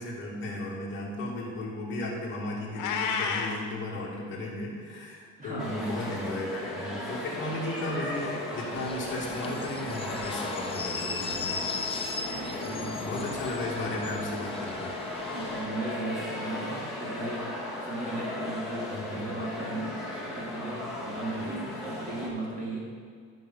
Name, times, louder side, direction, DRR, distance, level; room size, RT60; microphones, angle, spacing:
voice 1, 0.0-11.8 12.6-15.0 18.9-19.4 21.3-21.6, left 1 dB, 40° left, -5 dB, 2.6 m, -35 dB
Meow, 2.8-3.6, left 6 dB, 70° left, 1.1 m, -29 dB
voice 2, 5.4-6.2 7.8-8.0 9.2-9.9 12.2-13.2 13.8-13.9 15.3-17.5 17.8-19.9 20.2-22.9, right 2 dB, 25° right, -4 dB, 2.5 m, -37 dB
sound 1, 5.6-22.3, left 1 dB, ahead, 1.7 m, -36 dB
sound 2, 8.7-15.7, left 4 dB, 20° left, 0.5 m, -37 dB
12.5 x 5.4 x 5.7 m, 2.1 s
cardioid pair, 170°, 31 cm